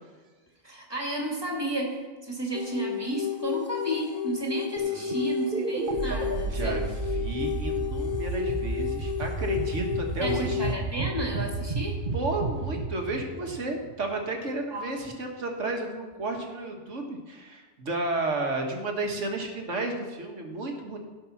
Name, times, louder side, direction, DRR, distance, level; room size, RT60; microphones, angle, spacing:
voice 1, 0.6-6.8 10.2-12.0 14.7-14.9, right 1 dB, 20° right, -1 dB, 2.3 m, -32 dB
sound 1, 2.5-10.7, left 13 dB, 50° left, 0.3 m, -32 dB
sound 2, 4.8-14.1, right 4 dB, 45° right, 1.1 m, -32 dB
voice 2, 4.8-5.1 6.5-10.6 12.1-21.0, right 2 dB, 90° right, 2 dB, 1.8 m, -32 dB
16.0 x 5.4 x 5.9 m, 1.4 s
omnidirectional pair, 1.2 m